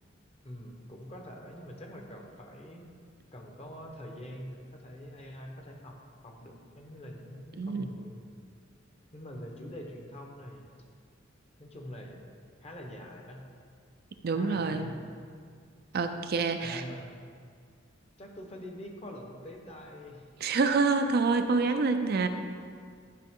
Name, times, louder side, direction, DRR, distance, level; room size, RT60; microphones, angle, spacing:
voice 1, 0.4-2.8 3.3-6.0 6.2-8.2 9.1-10.7 11.6-12.3 12.6-13.6 14.3-15.1 16.6-17.1 18.2-20.3, equal, 30° left, 2 dB, 1.0 m, -44 dB
voice 2, 7.6-7.9 14.2-14.9 15.9-16.8 20.4-22.3, right 4 dB, 55° right, 7 dB, 0.5 m, -27 dB
11.5 x 5.5 x 3.7 m, 2.1 s
head